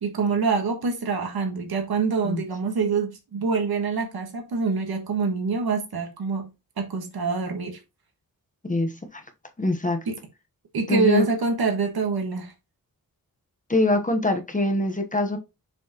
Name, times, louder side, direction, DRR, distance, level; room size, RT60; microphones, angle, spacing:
voice 1, 0.0-6.5 6.8-7.8 10.1-10.2 10.7-12.5, right 4 dB, 85° right, 1.6 m, -25 dB
voice 2, 8.7-9.2 9.6-10.0 10.9-11.3 13.7-15.4, left 2 dB, 20° left, 1.2 m, -23 dB
7.0 x 4.6 x 3.0 m
wide cardioid pair, 105°, 37 cm